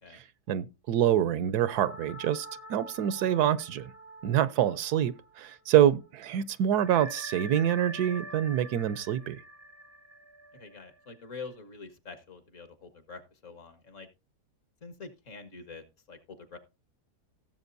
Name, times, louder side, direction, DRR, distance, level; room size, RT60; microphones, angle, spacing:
voice 1, 0.1-3.9 4.2-9.4, right 11 dB, 75° right, 1.2 m, -26 dB
sound 1, 1.7-5.8 6.0-6.1 6.8-11.4, right 1 dB, 15° right, 0.6 m, -45 dB
voice 2, 10.5-14.1 14.8-16.6, left 4 dB, 50° left, 1.7 m, -46 dB
17.0 x 7.6 x 2.6 m
omnidirectional pair, 1.7 m